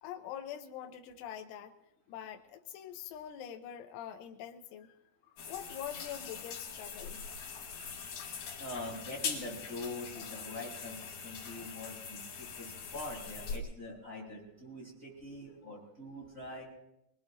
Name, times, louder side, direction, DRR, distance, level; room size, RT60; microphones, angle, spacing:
voice 1, 0.0-1.8 2.1-5.0 5.3-7.3, left 10 dB, 85° left, 4 dB, 3.4 m, -44 dB
sound 1, 5.4-13.6, left 6 dB, 55° left, 3.3 m, -42 dB
voice 2, 8.6-16.6, left 2 dB, 15° right, -3 dB, 7.6 m, -44 dB
25.0 x 21.0 x 2.6 m, 0.87 s
omnidirectional pair, 5.6 m